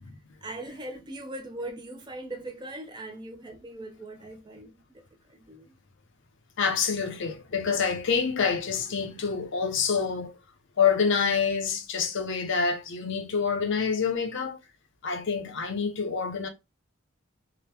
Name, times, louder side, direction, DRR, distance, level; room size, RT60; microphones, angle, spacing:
voice 1, 0.4-5.0 5.3-5.8 11.9-12.0, right 1 dB, 20° right, 0.4 m, -40 dB
voice 2, 6.6-10.4 10.8-14.6 15.0-16.5, left 6 dB, 55° left, 0.6 m, -27 dB
2.8 x 2.1 x 3.3 m
head